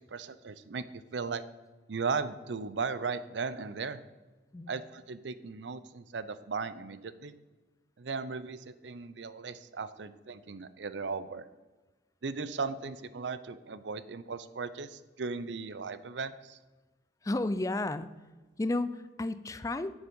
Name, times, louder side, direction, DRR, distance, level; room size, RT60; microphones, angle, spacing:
voice 1, 0.1-1.4 1.9-4.0 4.7-7.3 8.0-11.5 12.2-16.6, right 4 dB, 85° right, 14 dB, 0.6 m, -37 dB
voice 2, 17.2-18.1 18.6-19.9, left 2 dB, 20° left, 13 dB, 0.4 m, -32 dB
10.0 x 7.1 x 5.4 m, 1.2 s
head